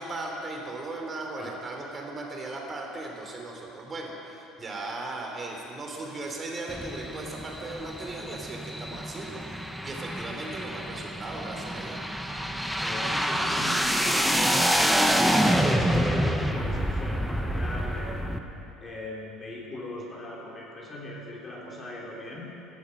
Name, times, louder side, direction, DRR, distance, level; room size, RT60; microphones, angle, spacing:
voice 1, 0.0-12.0, right 2 dB, 25° right, 1 dB, 2.9 m, -37 dB
sound 1, 6.7-18.4, equal, ahead, 0.8 m, -27 dB
voice 2, 12.8-18.4 18.8-22.5, left 1 dB, 25° left, -3 dB, 3.4 m, -40 dB
16.5 x 12.5 x 6.6 m, 2.9 s
cardioid pair, 140°, 0 cm